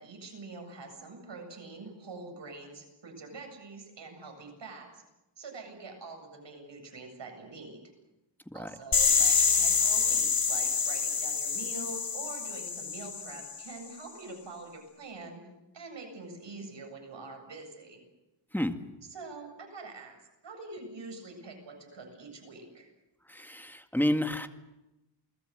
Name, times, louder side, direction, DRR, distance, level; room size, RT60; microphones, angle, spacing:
voice 1, 0.0-5.0 5.4-7.8 8.5-15.4 15.7-18.0 19.1-20.2 20.4-22.9, right 3 dB, 80° right, 3 dB, 8.0 m, -45 dB
sound 1, 8.9-13.7, left 5 dB, 55° left, 3.1 m, -27 dB
voice 2, 23.3-24.5, left 1 dB, 5° left, 6 dB, 2.0 m, -30 dB
29.0 x 20.5 x 8.0 m, 0.95 s
wide cardioid pair, 105°, 43 cm